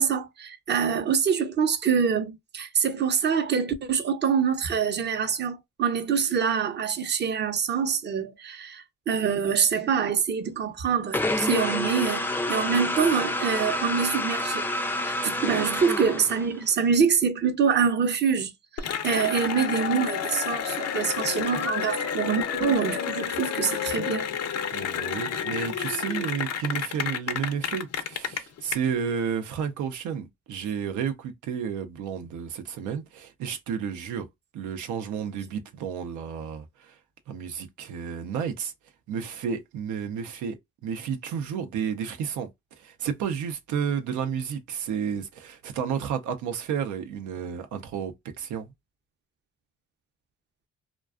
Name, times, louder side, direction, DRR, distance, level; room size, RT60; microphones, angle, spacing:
voice 1, 0.0-14.6 15.0-24.3, right 6 dB, 35° right, 0.6 m, -25 dB
sound 1, 11.1-16.7, left 1 dB, 5° left, 0.3 m, -28 dB
Cheering / Applause, 18.8-28.7, left 8 dB, 55° left, 0.5 m, -30 dB
voice 2, 24.7-34.3 34.5-37.0 37.3-38.7 39.1-40.6 40.8-42.5 42.8-48.7, right 7 dB, 80° right, 0.5 m, -31 dB
2.3 x 2.2 x 2.3 m
cardioid pair, 90°, 30 cm